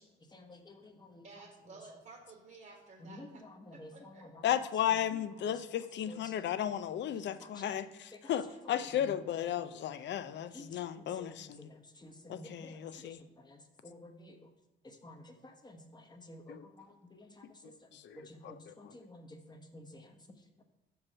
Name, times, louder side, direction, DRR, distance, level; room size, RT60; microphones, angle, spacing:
voice 1, 0.0-1.8 3.0-6.7 7.0-7.7 8.1-9.1 9.5-9.6 10.5-14.5 14.8-20.2 20.6-20.7, left 1 dB, 20° left, 4 dB, 1.0 m, -53 dB
voice 2, 1.2-3.4 3.7-4.2 8.4-8.6, right 3 dB, 50° right, 0 dB, 1.5 m, -54 dB
voice 3, 4.4-7.9 8.3-11.5 12.3-13.2 16.5-16.6 18.0-18.2, left 10 dB, 65° left, 12 dB, 0.5 m, -34 dB
6.2 x 4.7 x 6.1 m, 1.1 s
cardioid pair, 90°, 20 cm